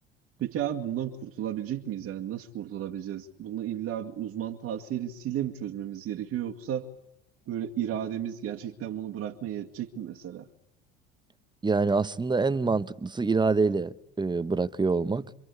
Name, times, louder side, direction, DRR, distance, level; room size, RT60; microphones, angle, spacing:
voice 1, 0.4-6.9 7.5-10.5, right 10 dB, 50° right, 2.2 m, -33 dB
voice 2, 11.6-15.3, right 4 dB, 15° right, 1.2 m, -26 dB
27.5 x 25.5 x 8.4 m
hypercardioid pair, 65°, 32 cm